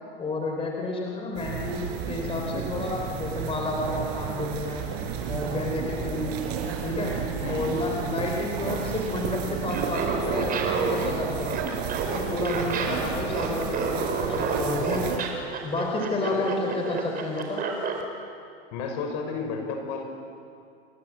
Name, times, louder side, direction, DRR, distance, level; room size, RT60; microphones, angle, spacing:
voice 1, 0.2-4.8 5.3-6.4 6.8-11.5 12.1-15.2 15.6-17.7, left 2 dB, 15° left, 0 dB, 4.1 m, -30 dB
sound 1, 1.3-15.2, right 7 dB, 45° right, 5.1 m, -32 dB
voice 2, 7.4-7.8 16.3-16.7 18.7-20.0, left 4 dB, 50° left, 4 dB, 6.2 m, -32 dB
Laughter, 9.7-18.0, right 5 dB, 25° right, 4.7 m, -30 dB
28.5 x 22.0 x 8.5 m, 2.4 s
supercardioid pair, 135°, 32 cm